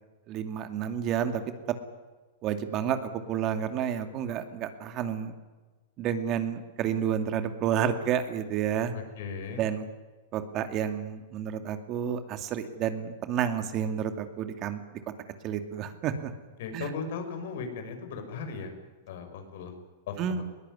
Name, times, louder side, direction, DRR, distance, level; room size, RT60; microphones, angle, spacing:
voice 1, 0.3-1.4 2.4-5.3 6.0-8.9 9.6-9.9 10.3-14.8 15.4-16.3 16.7-16.9 20.2-20.4, right 9 dB, 40° right, 8 dB, 2.4 m, -30 dB
voice 2, 8.9-9.6 16.6-18.7 19.1-19.7 20.1-20.4, left 5 dB, 65° left, 6 dB, 5.9 m, -37 dB
21.0 x 18.5 x 9.8 m, 1.2 s
hypercardioid pair, 125°, 0 cm